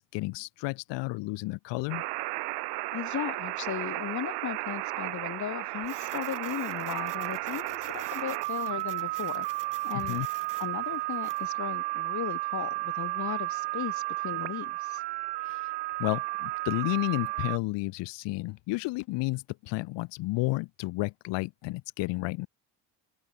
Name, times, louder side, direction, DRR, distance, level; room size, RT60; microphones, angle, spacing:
voice 1, 0.0-2.0 9.9-10.3 15.4-15.6 16.0-22.5, left 22 dB, 80° left, 3.2 m, -32 dB
sound 1, 1.9-17.6, right 21 dB, 70° right, 0.9 m, -33 dB
voice 2, 2.9-9.5 9.8-10.2 10.6-15.0, left 10 dB, 40° left, 2.1 m, -36 dB
Printer, 5.8-11.5, right 10 dB, 50° right, 3.5 m, -50 dB
open air
cardioid pair, 105°, 42 cm